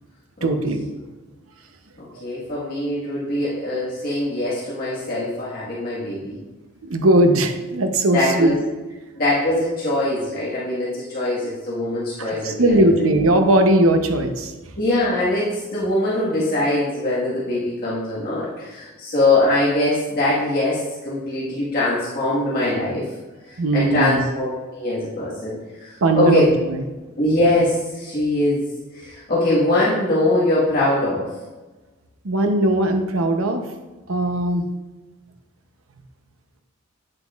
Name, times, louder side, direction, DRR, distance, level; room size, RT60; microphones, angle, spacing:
voice 1, 0.4-0.8 2.2-2.3 6.8-8.5 12.2-14.5 23.6-24.2 26.0-26.8 32.2-33.6 34.1-34.6, right 1 dB, 90° right, 6 dB, 0.8 m, -19 dB
voice 2, 2.0-6.4 8.1-8.5 9.2-12.8 14.7-23.1 23.5-26.5 27.2-28.6 28.9-31.3, left 1 dB, 45° left, -8 dB, 1.6 m, -22 dB
8.9 x 7.8 x 2.4 m, 1.2 s
head